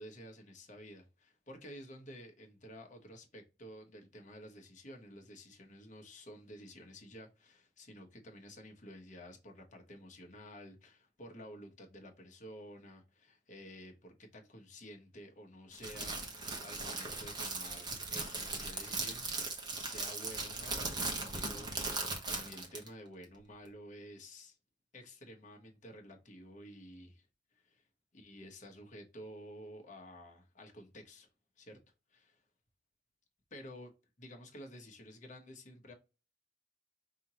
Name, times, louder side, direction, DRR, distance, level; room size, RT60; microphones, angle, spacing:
voice 1, 0.0-19.3 19.8-24.6 24.9-27.3 27.5-27.8 28.1-31.3 31.6-31.8 32.1-32.4 33.5-33.9 34.2-35.9, equal, 40° left, 1.2 m, -51 dB
Crackle, 15.7-22.9, right 3 dB, 20° right, 1.1 m, -38 dB
5.4 x 2.8 x 3.0 m
head